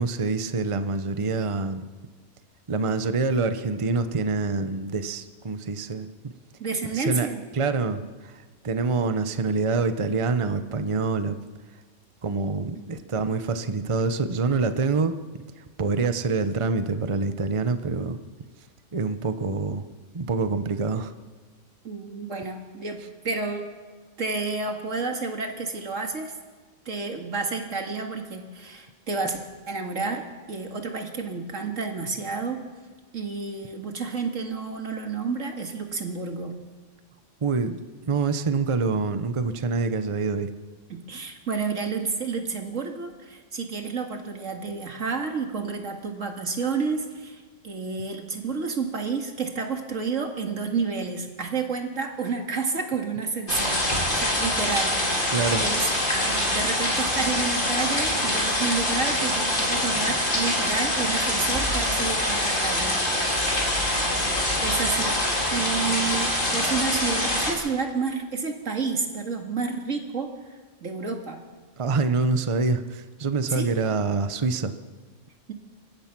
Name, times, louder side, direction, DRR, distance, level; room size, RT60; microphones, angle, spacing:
voice 1, 0.0-1.9 2.7-6.3 6.9-7.3 7.5-11.4 12.2-15.2 15.6-18.2 18.9-19.9 20.1-21.1 37.4-40.5 55.3-55.7 71.8-74.7, right 4 dB, 30° right, 10 dB, 0.8 m, -26 dB
voice 2, 6.6-7.4 12.8-12.9 21.8-23.7 24.2-26.3 26.9-32.6 33.1-36.6 40.9-53.8 54.2-55.2 55.6-55.9 56.2-62.9 64.6-65.2 65.5-70.3 70.8-71.4 73.5-73.7 75.5-75.6, right 4 dB, 80° right, 3 dB, 2.5 m, -30 dB
sound 1, 53.5-67.5, left 1 dB, 45° left, 3.9 m, -25 dB
28.0 x 15.5 x 6.1 m, 1.4 s
omnidirectional pair, 1.3 m